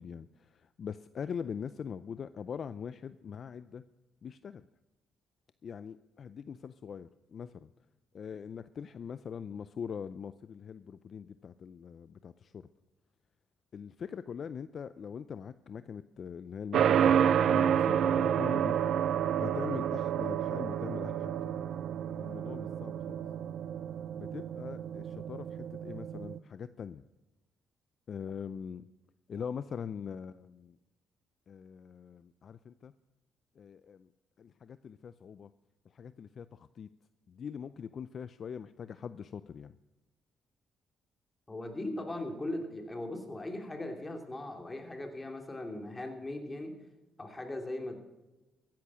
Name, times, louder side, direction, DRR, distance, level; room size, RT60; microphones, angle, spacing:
voice 1, 0.0-3.8 4.2-4.6 5.6-7.7 8.1-12.7 13.7-18.8 19.4-21.7 22.2-23.2 24.2-27.0 28.1-28.8 29.3-30.8 31.5-32.9 33.6-34.1 34.4-35.5 35.9-36.9 37.3-39.7, left 7 dB, 50° left, 14 dB, 0.4 m, -42 dB
sound 1, 16.7-26.4, right 9 dB, 65° right, 0.5 m, -29 dB
voice 2, 41.5-46.7 47.2-48.0, left 1 dB, 20° left, 3 dB, 2.9 m, -39 dB
15.0 x 10.5 x 6.2 m, 1.1 s
cardioid pair, 90°, 0 cm